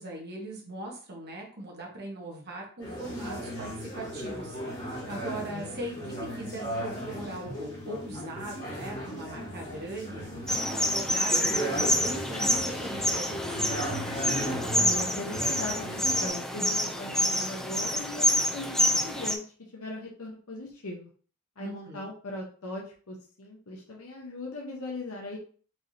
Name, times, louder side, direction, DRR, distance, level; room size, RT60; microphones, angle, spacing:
voice 1, 0.0-10.2 10.6-13.7 21.6-22.1, right 1 dB, 50° right, -1 dB, 1.3 m, -40 dB
sound 1, 2.8-16.3, equal, 35° left, 1.8 m, -36 dB
sound 2, 10.5-19.3, equal, ahead, 0.4 m, -27 dB
voice 2, 14.7-19.5 19.7-21.1 21.6-25.4, left 2 dB, 70° left, -2 dB, 1.0 m, -39 dB
4.6 x 3.3 x 2.8 m, 0.42 s
head